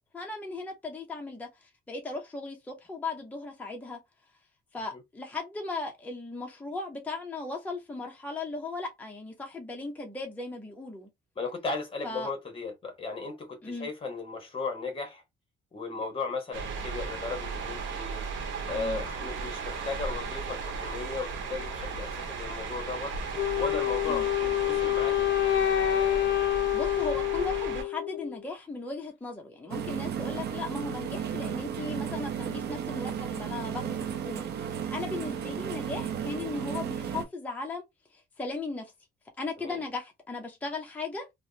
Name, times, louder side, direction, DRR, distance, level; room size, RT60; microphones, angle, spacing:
voice 1, 0.1-4.0 4.7-11.1 12.0-12.3 13.6-13.9 18.8-19.0 24.1-24.2 26.5-37.8 38.1-38.9 39.4-41.3, left 3 dB, 10° left, 0.6 m, -37 dB
voice 2, 11.4-15.2 15.7-18.2 18.7-23.2 23.6-25.5 39.6-39.8, left 4 dB, 30° left, 1.0 m, -36 dB
sound 1, 16.5-27.8, right 5 dB, 80° right, 0.9 m, -36 dB
Wind instrument woodwind instrument, 23.4-28.4, left 13 dB, 75° left, 0.4 m, -27 dB
sound 2, 29.7-37.2, right 8 dB, 60° right, 0.5 m, -34 dB
3.3 x 2.0 x 2.7 m
cardioid pair, 165°, 19 cm